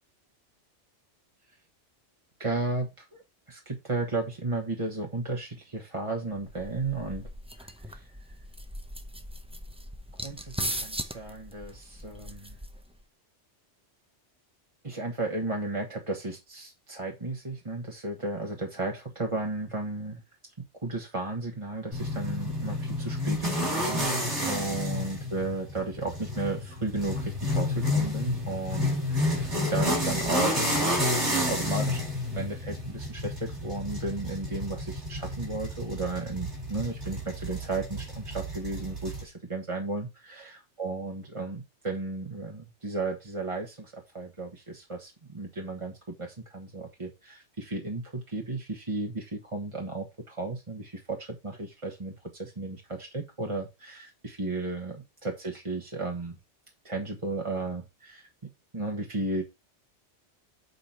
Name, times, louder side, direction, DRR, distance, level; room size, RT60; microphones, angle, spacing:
voice 1, 2.4-3.2 3.5-7.2 7.6-8.0 10.2-12.6 14.8-20.2 20.8-30.6 31.5-56.4 56.8-58.3 58.7-59.4, right 2 dB, 25° right, 1 dB, 1.4 m, -34 dB
sound 1, 6.4-13.0, equal, 5° right, 0.7 m, -39 dB
sound 2, 21.9-39.2, left 1 dB, 70° right, 4.3 m, -30 dB
8.2 x 5.1 x 4.3 m, 0.24 s
omnidirectional pair, 1.2 m